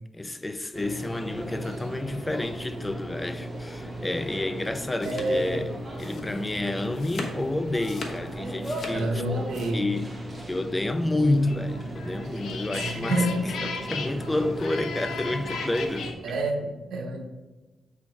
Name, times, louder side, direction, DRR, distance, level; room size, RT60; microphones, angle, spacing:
voice 1, 0.1-9.3 9.7-10.2 10.5-13.3 13.6-16.1, left 2 dB, 15° left, 0.3 m, -29 dB
sound 1, 0.7-16.1, right 1 dB, 25° right, 1.7 m, -37 dB
sound 2, 4.5-9.7, left 3 dB, 55° left, 1.1 m, -40 dB
voice 2, 5.0-5.6 8.9-9.8 12.7-13.5 16.2-17.2, right 1 dB, 85° right, 1.0 m, -28 dB
sound 3, 11.4-16.1, left 5 dB, 80° left, 0.7 m, -36 dB
7.9 x 3.5 x 4.6 m
cardioid pair, 110°, 0 cm